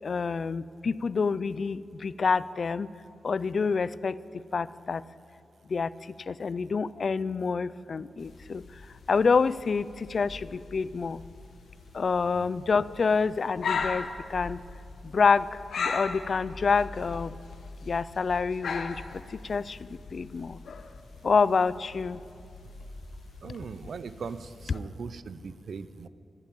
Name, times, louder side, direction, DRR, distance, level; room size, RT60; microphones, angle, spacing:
voice 1, 0.0-2.9 3.2-5.0 5.7-8.8 9.1-11.2 11.9-14.6 15.0-17.3 17.8-20.6 21.2-22.2, left 5 dB, 40° left, 18 dB, 0.3 m, -27 dB
sound 1, 8.2-24.8, left 4 dB, 70° left, 1.0 m, -39 dB
voice 2, 23.4-26.1, right 5 dB, 55° right, 14 dB, 0.6 m, -39 dB
14.0 x 11.5 x 9.1 m, 2.5 s
wide cardioid pair, 175°, 0 cm